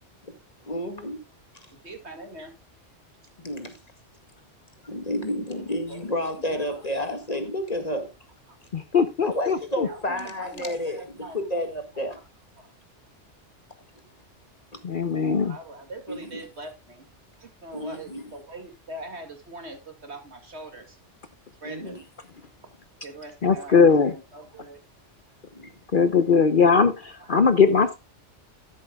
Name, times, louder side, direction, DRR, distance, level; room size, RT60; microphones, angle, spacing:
voice 1, 0.6-1.2 3.4-3.8 4.9-8.1 9.2-12.2 14.7-14.8 16.1-16.4 17.7-18.3 21.6-22.0 25.5-25.7, left 1 dB, 35° left, 2.0 m, -31 dB
voice 2, 1.8-2.5 5.5-5.6 5.9-6.8 8.5-8.6 9.8-11.5 12.1-12.2 12.6-12.7 15.0-17.0 17.4-21.0 21.6-22.0 23.0-24.8 27.2-27.4, right 2 dB, 65° right, 2.5 m, -42 dB
voice 3, 8.7-9.9 14.8-15.5 23.4-24.1 25.9-28.0, left 5 dB, 50° left, 0.9 m, -20 dB
13.0 x 11.0 x 2.3 m
omnidirectional pair, 1.2 m